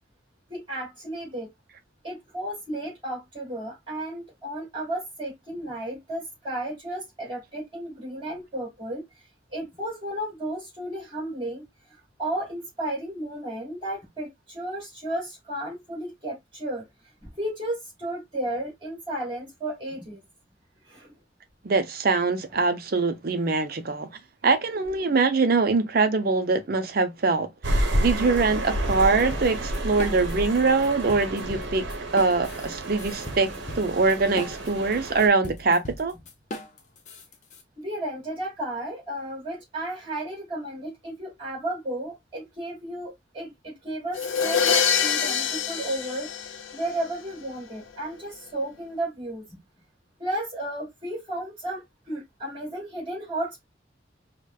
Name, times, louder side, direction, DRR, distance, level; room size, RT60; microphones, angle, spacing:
voice 1, 0.5-1.5 2.0-9.0 9.5-11.6 11.9-16.9 17.2-20.2 20.9-21.1 37.8-46.3 46.7-49.6 50.2-53.7, right 1 dB, 25° right, 2.2 m, -33 dB
voice 2, 21.6-24.1 24.4-31.8 32.1-33.5 33.7-36.1, right 4 dB, 50° right, 0.5 m, -23 dB
sound 1, 27.6-35.3, right 1 dB, 70° right, 0.9 m, -30 dB
sound 2, 28.9-30.6 30.8-37.6, left 1 dB, 40° left, 0.6 m, -39 dB
sound 3, 44.2-47.1, left 7 dB, 85° left, 0.5 m, -25 dB
4.9 x 2.2 x 2.3 m
head